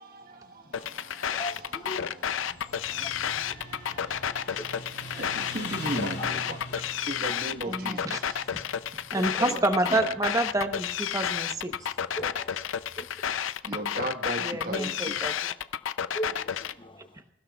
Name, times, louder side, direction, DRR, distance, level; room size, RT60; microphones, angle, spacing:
voice 1, 0.0-4.8 5.1-6.6 7.1-8.5 9.4-9.7 13.6-15.3, right 1 dB, 50° right, 1.4 m, -38 dB
sound 1, 0.7-16.7, left 9 dB, 90° left, 0.5 m, -31 dB
voice 2, 1.3-2.3 6.2-6.4 7.3-7.4 8.5-8.6 9.2-9.3 12.2-12.5 13.0-13.1 14.8-14.9 16.1-17.1, equal, 25° left, 0.8 m, -38 dB
Motorcycle, 2.3-13.4, left 2 dB, 55° left, 3.0 m, -44 dB
voice 3, 7.7-8.2 9.1-11.9 14.4-15.5, right 2 dB, 15° right, 0.9 m, -28 dB
26.5 x 16.0 x 2.4 m
head